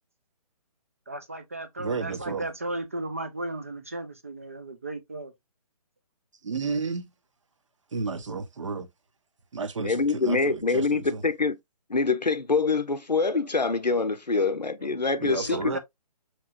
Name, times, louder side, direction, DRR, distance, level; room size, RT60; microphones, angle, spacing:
voice 1, 1.1-5.3 13.7-13.8 14.3-14.5 14.8-15.0 15.4-15.8, right 2 dB, 20° right, 0.3 m, -35 dB
voice 2, 1.8-2.4 6.4-7.1 7.9-8.9 9.5-11.2 15.2-15.8, right 4 dB, 50° right, 0.7 m, -32 dB
voice 3, 9.8-11.6 11.9-15.6, left 4 dB, 85° left, 0.7 m, -25 dB
5.9 x 3.0 x 2.5 m
figure-of-eight pair, 140°, 21 cm